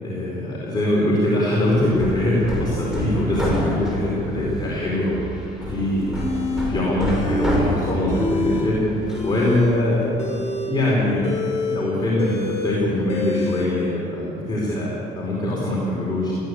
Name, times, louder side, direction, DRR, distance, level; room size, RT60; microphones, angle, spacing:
voice 1, 0.0-5.2 5.7-10.3 10.7-11.3 11.6-16.3, left 1 dB, 25° left, -6 dB, 4.8 m, -23 dB
Hammer, 1.7-9.5, equal, 5° right, 6.5 m, -28 dB
sound 1, 6.1-6.7 7.1-7.6 7.9-8.7 9.0-13.7, left 2 dB, 40° left, 6.2 m, -27 dB
20.0 x 15.5 x 8.6 m, 2.9 s
cardioid pair, 110°, 17 cm